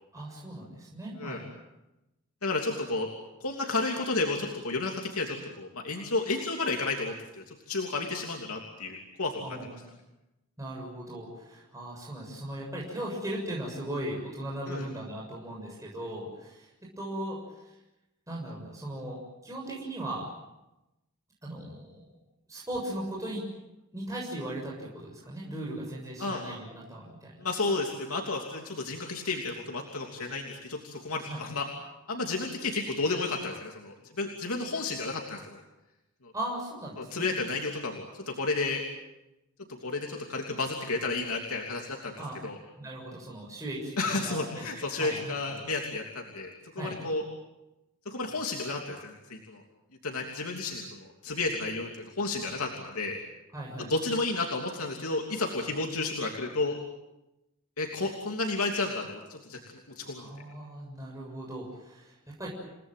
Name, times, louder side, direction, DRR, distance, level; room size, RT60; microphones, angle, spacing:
voice 1, 0.1-1.5 9.4-9.9 10.6-17.4 18.3-20.3 21.4-22.1 22.5-23.4 23.9-27.4 31.3-31.4 36.3-37.3 42.2-42.4 42.8-45.6 46.8-47.1 53.5-53.9 60.2-62.5, right 1 dB, 15° right, -3 dB, 7.0 m, -38 dB
voice 2, 2.4-3.1 3.4-9.4 14.7-14.9 26.2-26.4 27.4-31.7 32.1-35.6 36.2-36.3 37.0-38.8 39.8-42.1 42.4-42.6 44.0-46.5 46.7-47.2 48.0-49.6 50.0-51.9 52.2-53.2 53.8-56.8 57.8-59.6 60.0-60.3, left 3 dB, 80° left, 1 dB, 3.1 m, -32 dB
29.5 x 18.5 x 9.2 m, 0.95 s
head